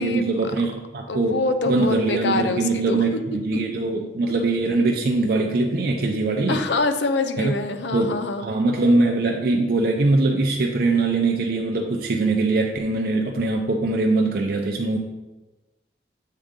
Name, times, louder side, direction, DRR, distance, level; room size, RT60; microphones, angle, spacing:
voice 1, 0.0-6.6 7.4-7.6 7.9-8.2 8.4-15.0, right 3 dB, 55° right, 1 dB, 0.5 m, -22 dB
voice 2, 1.1-3.0 3.3-3.4 6.5-8.5, left 3 dB, 80° left, 9 dB, 0.5 m, -25 dB
7.4 x 3.8 x 3.7 m, 1.1 s
head